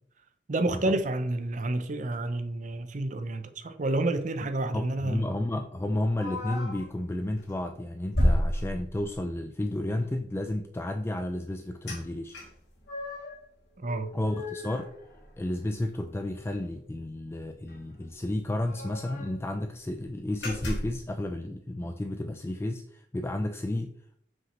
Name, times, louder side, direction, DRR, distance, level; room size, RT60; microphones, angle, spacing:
voice 1, 0.5-5.4 13.8-14.1, right 2 dB, 45° right, 0.6 m, -29 dB
voice 2, 4.7-12.4 14.1-14.9 15.4-24.0, left 1 dB, 15° left, 0.3 m, -32 dB
sound 1, 6.2-6.9 7.4-7.6 8.1-9.3 11.9-12.0 12.3-13.4 13.8-15.6 15.9-16.0 16.4-16.6 17.7-17.8 18.0-18.1 18.5-19.4 19.9-20.0 20.4-21.0, equal, 90° left, 2.8 m, -31 dB
7.4 x 6.0 x 3.1 m
head